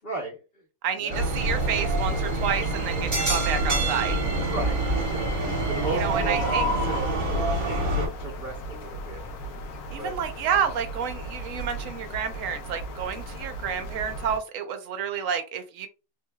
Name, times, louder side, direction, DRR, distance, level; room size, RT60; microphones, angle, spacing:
voice 1, 0.0-0.4 1.0-1.3 4.5-4.7 5.0-9.2 9.9-10.1, right 2 dB, 45° left, -2 dB, 1.1 m, -35 dB
voice 2, 0.8-4.2 5.9-6.7 9.9-15.9, right 7 dB, 65° right, 9 dB, 0.9 m, -30 dB
sound 1, 1.1-8.1, right 1 dB, 35° right, 1.1 m, -26 dB
sound 2, 1.2-14.4, right 1 dB, 75° left, 1.2 m, -36 dB
3.4 x 3.1 x 2.2 m, 0.31 s
omnidirectional pair, 1.7 m